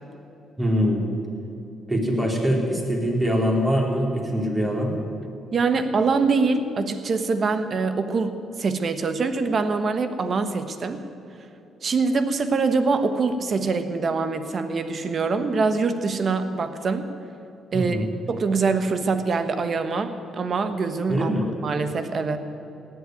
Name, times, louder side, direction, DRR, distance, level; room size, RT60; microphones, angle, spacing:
voice 1, 0.6-1.0 1.9-4.9 17.7-18.1 21.1-21.4, equal, 20° right, -1 dB, 3.6 m, -23 dB
voice 2, 5.5-11.0 11.8-17.1 17.7-18.0 18.3-21.3 21.6-22.4, right 4 dB, 45° right, 9 dB, 1.2 m, -24 dB
17.5 x 7.9 x 9.4 m, 2.8 s
cardioid pair, 90°, 0 cm